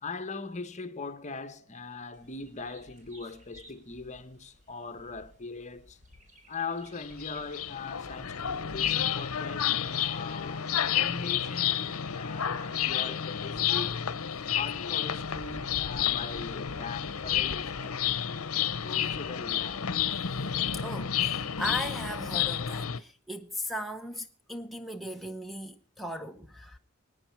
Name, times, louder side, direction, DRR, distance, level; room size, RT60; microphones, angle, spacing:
voice 1, 0.0-6.0 6.5-14.0 14.5-18.2 18.8-19.9, left 4 dB, 35° left, 1.0 m, -40 dB
Bird vocalization bird call bird song, 2.1-21.5, left 1 dB, 35° right, 3.6 m, -52 dB
sound 1, 7.0-23.0, left 9 dB, 70° left, 0.8 m, -30 dB
voice 2, 20.7-26.8, equal, ahead, 0.7 m, -38 dB
25.5 x 9.4 x 4.6 m
head